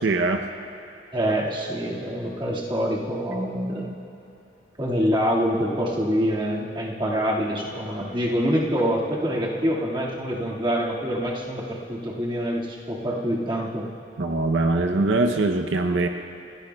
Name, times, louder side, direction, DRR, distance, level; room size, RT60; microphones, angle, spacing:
voice 1, 0.0-0.4 14.2-16.1, right 2 dB, 80° right, 4 dB, 0.7 m, -22 dB
voice 2, 1.1-3.9 4.8-13.9, equal, 25° right, -4 dB, 1.9 m, -25 dB
29.5 x 16.5 x 2.3 m, 2.8 s
head